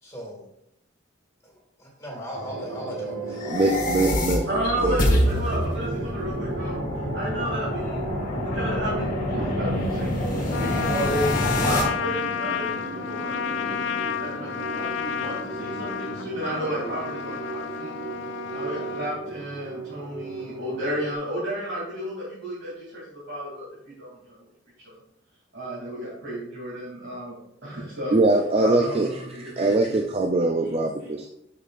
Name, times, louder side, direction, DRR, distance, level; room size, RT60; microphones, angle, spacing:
voice 1, 0.0-0.5 1.4-3.7 4.0-4.5, equal, 15° left, -1 dB, 2.0 m, -39 dB
sound 1, 2.3-21.1, right 3 dB, 85° right, 1.6 m, -35 dB
sound 2, 3.3-11.8, left 1 dB, 40° left, 1.4 m, -26 dB
voice 2, 3.5-4.4 4.8-5.0 28.1-29.1 29.3-31.3, right 2 dB, 30° right, 2 dB, 0.4 m, -22 dB
voice 3, 4.5-13.9 14.2-17.9 18.5-23.0 23.3-24.5 24.8-25.0 25.5-27.3 27.6-28.2 28.6-30.0, right 1 dB, 55° right, -8 dB, 2.7 m, -32 dB
Trumpet, 10.5-19.2, left 8 dB, 60° left, 0.4 m, -31 dB
11.0 x 5.0 x 2.5 m, 0.77 s
head